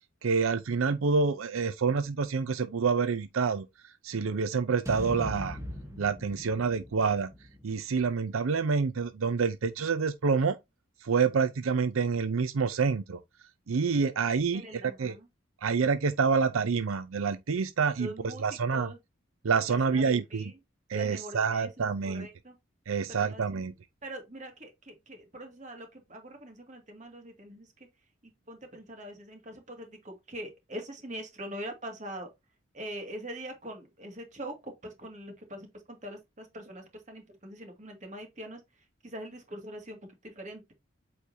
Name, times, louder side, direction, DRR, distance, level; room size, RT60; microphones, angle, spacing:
voice 1, 0.2-5.6 6.0-7.3 7.6-10.6 11.0-13.2 13.7-15.2 15.6-18.9 19.4-20.5 20.9-22.3 22.9-23.7, right 5 dB, 85° right, 0.5 m, -27 dB
sound 1, 4.9-9.1, equal, 15° right, 1.2 m, -42 dB
voice 2, 14.5-15.3 18.0-19.0 19.7-20.5 20.9-22.6 23.1-23.6 24.0-27.9 28.5-32.3 32.7-38.6 39.0-40.0 40.2-40.6, right 1 dB, 35° right, 2.1 m, -43 dB
8.3 x 4.4 x 2.7 m
head